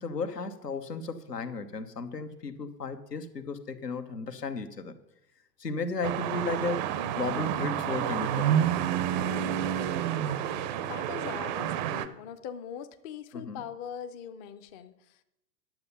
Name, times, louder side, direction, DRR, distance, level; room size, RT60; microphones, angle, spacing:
voice 1, 0.0-5.0 5.6-8.6 13.3-13.7, left 3 dB, 85° left, 9 dB, 1.1 m, -34 dB
sound 1, 6.0-12.1, right 10 dB, 30° right, 0.5 m, -29 dB
voice 2, 10.8-15.2, left 8 dB, 25° left, 10 dB, 0.5 m, -42 dB
10.5 x 7.1 x 5.5 m, 0.86 s
figure-of-eight pair, 95°, 47 cm